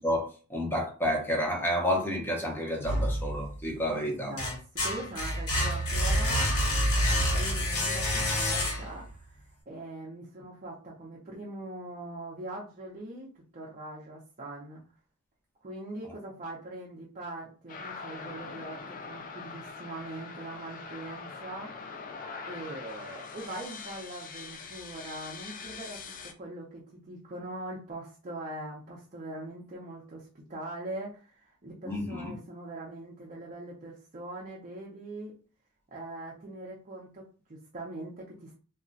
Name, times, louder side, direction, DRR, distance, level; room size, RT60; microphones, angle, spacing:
voice 1, 0.0-4.3 16.0-16.1 31.8-32.3, equal, 10° left, 0 dB, 0.7 m, -30 dB
sound 1, 2.8-3.7 4.1-9.1, equal, 85° left, 1.0 m, -28 dB
voice 2, 3.9-14.8 15.6-22.0 22.5-35.4 35.9-38.5, right 2 dB, 35° right, -4 dB, 0.5 m, -42 dB
sound 2, 17.7-26.3, left 4 dB, 40° left, 0.4 m, -43 dB
2.3 x 2.1 x 3.8 m, 0.37 s
head